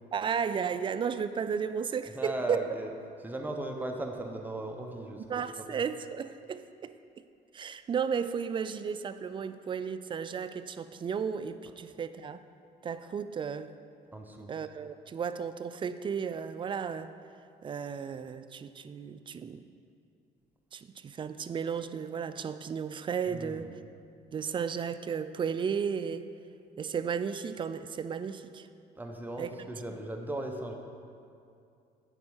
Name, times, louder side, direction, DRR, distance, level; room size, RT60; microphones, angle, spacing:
voice 1, 0.1-2.6 5.3-6.9 7.5-12.4 12.8-13.7 14.5-17.1 17.6-19.6 20.7-23.7 24.3-26.3 26.8-28.7 29.4-29.5, right 6 dB, 30° right, 12 dB, 0.3 m, -34 dB
voice 2, 2.1-2.9 3.2-5.9 14.1-14.5 23.3-23.7 29.0-30.7, right 1 dB, 10° right, 2 dB, 0.9 m, -37 dB
8.9 x 4.4 x 6.3 m, 2.5 s
cardioid pair, 110°, 17 cm